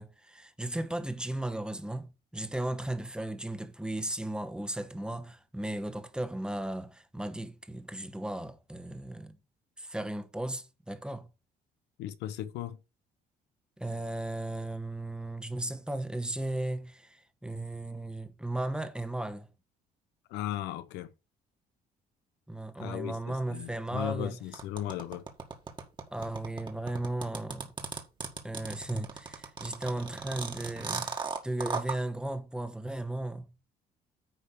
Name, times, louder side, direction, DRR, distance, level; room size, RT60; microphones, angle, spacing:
voice 1, 0.0-2.1 2.3-9.4 9.8-11.3 13.8-19.5 22.5-24.4 26.1-27.7 28.4-31.1 31.4-33.5, right 1 dB, 5° right, 1.1 m, -36 dB
voice 2, 12.0-12.8 20.3-21.1 22.8-25.2, left 13 dB, 90° left, 0.8 m, -36 dB
sound 1, 24.5-32.0, right 4 dB, 30° right, 1.7 m, -36 dB
9.8 x 3.5 x 6.8 m
cardioid pair, 110°, 17 cm